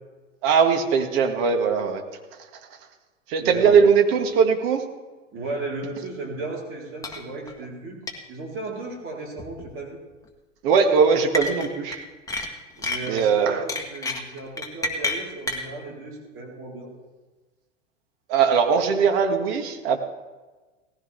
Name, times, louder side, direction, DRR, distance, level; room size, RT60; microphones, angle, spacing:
voice 1, 0.4-2.0 3.3-4.8 10.6-12.0 13.1-13.6 18.3-20.0, right 6 dB, 50° right, 5 dB, 1.9 m, -20 dB
voice 2, 3.4-3.7 5.3-8.0 8.3-10.0 12.8-16.9, right 3 dB, 35° right, -1 dB, 3.8 m, -35 dB
sound 1, 7.0-7.2 7.5-7.6 8.1-8.2 9.4-9.7 11.3-12.0 12.3-13.2 13.7-15.7, left 2 dB, 10° left, 1.6 m, -29 dB
18.0 x 15.0 x 3.4 m, 1.3 s
figure-of-eight pair, 95°, 38 cm